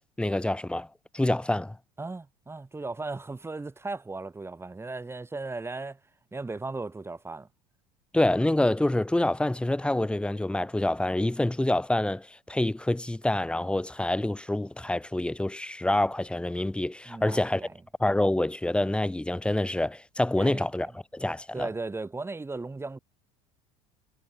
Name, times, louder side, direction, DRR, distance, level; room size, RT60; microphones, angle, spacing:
voice 1, 0.2-0.9 1.1-1.8 8.1-17.6 18.0-21.7, left 1 dB, 5° left, 1.0 m, -27 dB
voice 2, 2.0-6.0 6.3-7.5 17.1-17.8 20.4-20.9 21.5-23.0, right 3 dB, 10° right, 2.1 m, -36 dB
figure-of-eight pair, 65°, 20 cm